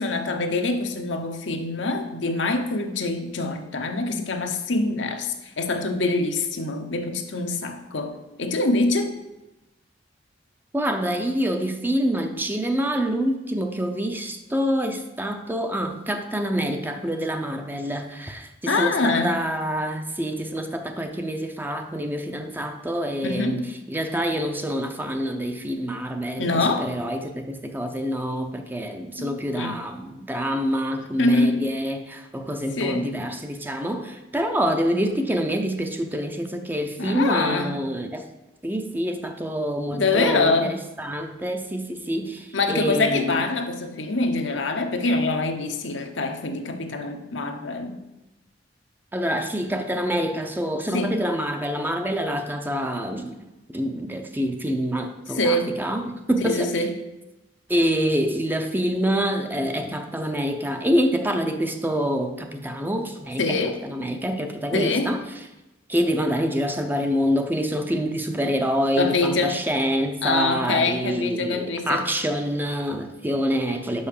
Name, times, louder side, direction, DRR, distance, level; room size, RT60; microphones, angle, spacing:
voice 1, 0.0-9.1 18.7-19.3 23.2-23.6 26.4-26.9 29.2-29.8 31.2-31.6 32.8-33.1 37.0-37.8 39.9-40.8 42.5-48.0 50.9-51.1 55.3-55.7 56.4-56.9 63.4-63.8 64.7-65.1 69.0-69.6 70.2-72.0, left 3 dB, 75° left, 5 dB, 0.9 m, -24 dB
voice 2, 10.7-23.6 23.9-38.3 38.6-43.4 49.1-53.4 53.7-56.7 57.7-65.2 65.9-74.1, equal, 10° right, 5 dB, 0.6 m, -26 dB
5.7 x 5.6 x 6.5 m, 0.99 s
head